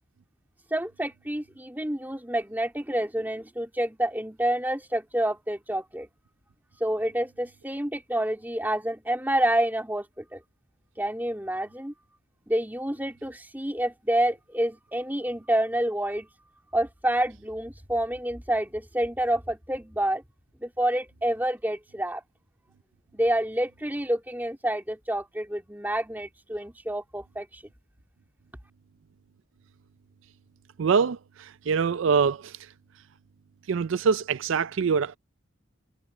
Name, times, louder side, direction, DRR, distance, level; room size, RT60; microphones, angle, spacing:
voice 1, 0.7-6.1 6.8-10.4 11.0-11.9 12.5-16.3 16.7-20.2 20.6-22.2 23.1-27.6, right 1 dB, 10° right, 3.2 m, -28 dB
voice 2, 30.8-32.6 33.7-35.2, right 5 dB, 70° right, 0.4 m, -24 dB
head